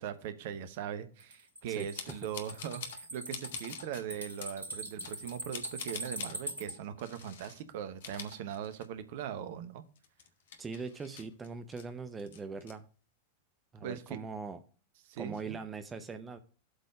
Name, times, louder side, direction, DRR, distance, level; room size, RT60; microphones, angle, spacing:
voice 1, 0.0-9.8 13.8-14.2 15.1-15.6, right 9 dB, 50° right, 11 dB, 0.9 m, -40 dB
sound 1, 1.2-6.7, right 1 dB, 75° right, 3.2 m, -42 dB
voice 2, 1.7-2.2 10.6-12.9 13.7-14.6 15.2-16.4, right 4 dB, 15° right, 9 dB, 0.7 m, -41 dB
sound 2, 2.0-3.0 3.3-4.0 4.4-4.6 5.0-6.4 7.0-7.6 7.9-9.1 9.4-9.5 10.0-11.9 12.2-12.7, left 7 dB, 60° left, 1.1 m, -46 dB
8.0 x 4.3 x 5.4 m, 0.37 s
figure-of-eight pair, 90°, 0 cm